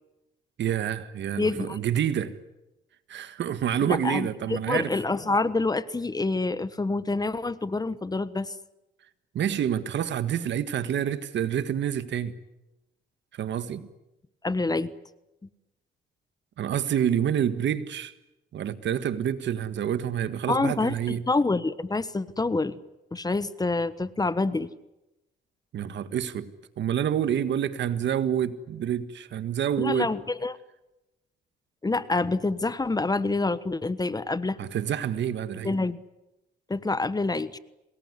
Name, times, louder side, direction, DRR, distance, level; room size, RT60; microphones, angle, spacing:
voice 1, 0.6-2.4 3.1-4.9 9.3-12.3 13.3-13.9 16.6-18.1 18.5-21.2 25.7-26.5 26.8-30.1 34.6-35.8, right 9 dB, 65° right, 1.7 m, -28 dB
voice 2, 1.4-1.8 3.8-8.5 14.4-14.9 20.5-22.8 23.1-24.7 29.8-30.6 31.8-34.6 35.6-36.0 36.7-37.6, left 3 dB, 20° left, 1.2 m, -27 dB
28.0 x 20.0 x 9.8 m
cardioid pair, 90°, 20 cm